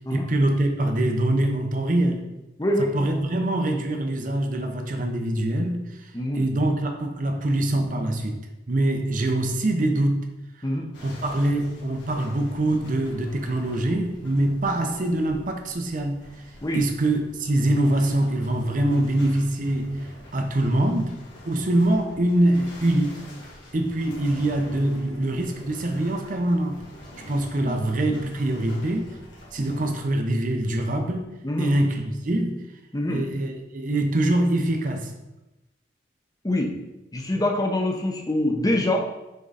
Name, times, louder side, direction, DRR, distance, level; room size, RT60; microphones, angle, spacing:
voice 1, 0.0-2.3 2.8-8.4 8.7-10.3 11.0-16.4 16.7-21.1 21.5-23.2 23.7-26.8 27.3-29.2 29.5-31.3 31.6-32.6 33.1-35.1, right 1 dB, 45° right, 4 dB, 0.7 m, -24 dB
voice 2, 2.6-3.1 6.1-6.5 10.6-10.9 16.6-16.8 27.6-27.9 31.4-31.7 32.9-33.2 36.4-36.7 37.1-39.2, left 1 dB, 20° left, 1 dB, 0.7 m, -25 dB
sound 1, 10.9-30.1, left 1 dB, 80° left, 1.7 m, -46 dB
6.6 x 3.7 x 4.1 m, 1.0 s
head